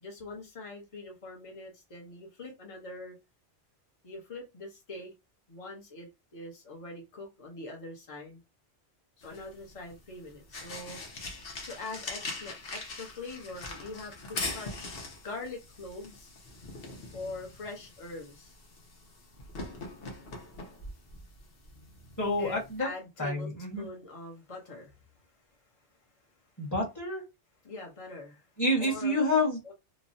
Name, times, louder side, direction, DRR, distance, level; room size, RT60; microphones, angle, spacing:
voice 1, 0.0-3.2 4.0-5.1 5.5-8.4 9.2-11.0 11.6-15.0 15.2-16.3 17.1-18.5 22.4-23.5 23.8-25.0 27.6-28.5 28.8-29.2 29.6-29.7, left 2 dB, 30° left, 0.9 m, -43 dB
sound 1, 9.2-22.8, left 3 dB, 55° left, 1.0 m, -42 dB
voice 2, 22.2-22.9 23.2-23.9 26.6-27.2 28.6-29.7, left 1 dB, 15° left, 1.2 m, -28 dB
3.0 x 2.1 x 2.6 m
omnidirectional pair, 1.2 m